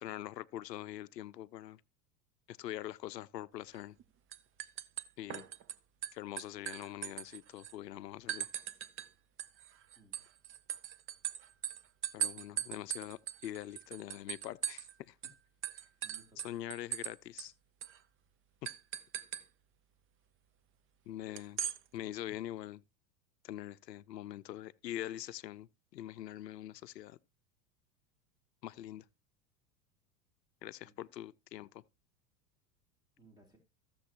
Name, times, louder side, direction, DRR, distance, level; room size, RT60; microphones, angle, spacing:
voice 1, 0.0-1.8 2.5-4.0 5.2-5.5 6.1-8.5 12.1-15.1 16.4-17.5 18.6-18.7 21.1-21.6 21.9-22.8 23.4-25.7 25.9-27.2 28.6-29.0 30.6-31.7, left 13 dB, 85° left, 0.6 m, -43 dB
sound 1, 3.7-4.0 4.3-5.7 6.0-7.7 8.3-9.1 9.4-14.9 15.2-15.3 15.6-17.1 17.4-17.5 17.8-18.0 18.6-19.4 21.4-21.8, right 10 dB, 25° right, 0.6 m, -39 dB
voice 2, 12.3-12.7 15.7-16.4 30.8-30.9 33.2-33.6, right 3 dB, 10° right, 3.0 m, -63 dB
15.0 x 6.9 x 2.8 m
hypercardioid pair, 90°, 48 cm